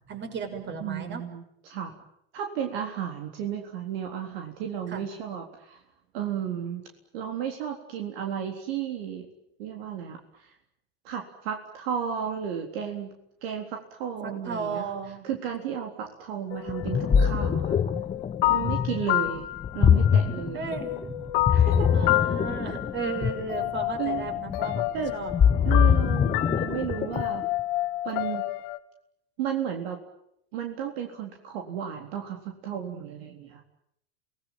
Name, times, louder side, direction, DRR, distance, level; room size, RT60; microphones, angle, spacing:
voice 1, 0.1-1.2 4.9-5.0 14.2-15.2 20.5-21.6 21.9-25.3 25.6-25.9, right 5 dB, 35° right, 7 dB, 6.2 m, -35 dB
voice 2, 0.8-2.0 2.3-5.8 6.1-6.8 7.1-9.3 9.6-10.5 11.0-13.1 13.4-14.8 15.2-17.8 18.5-19.4 19.7-20.8 21.5-21.9 24.0-24.3 24.9-25.1 25.6-27.5 28.0-28.5 29.4-30.0 30.5-33.6, right 8 dB, 70° right, 3 dB, 3.9 m, -33 dB
sound 1, 16.5-20.4 20.7-28.8, left 16 dB, 60° left, 1.8 m, -30 dB
Ocean, 16.7-27.5, left 7 dB, 20° left, 1.0 m, -24 dB
28.0 x 19.5 x 9.3 m, 0.76 s
hypercardioid pair, 95°, 32 cm